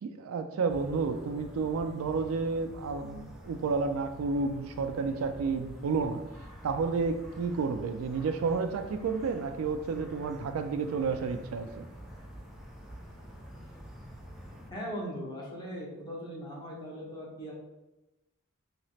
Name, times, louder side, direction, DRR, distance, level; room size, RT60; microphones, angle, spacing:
voice 1, 0.0-11.9, right 4 dB, 80° right, 7 dB, 0.3 m, -31 dB
sound 1, 0.7-14.7, equal, ahead, 0.4 m, -48 dB
voice 2, 14.7-17.5, equal, 20° left, -4 dB, 0.8 m, -39 dB
3.1 x 2.9 x 2.7 m, 0.99 s
head